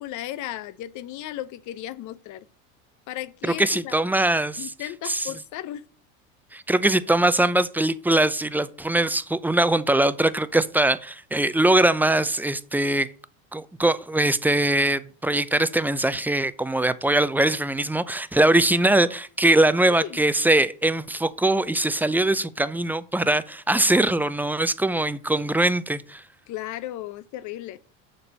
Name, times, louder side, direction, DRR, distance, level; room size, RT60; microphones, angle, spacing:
voice 1, 0.0-2.4 3.1-3.9 4.6-5.8 19.9-20.2 26.5-27.8, left 13 dB, 50° left, 0.8 m, -35 dB
voice 2, 3.4-4.7 5.0-5.3 6.5-13.1 13.5-26.2, right 1 dB, 5° right, 0.6 m, -22 dB
7.2 x 6.7 x 5.3 m
hypercardioid pair, 85°, 40 cm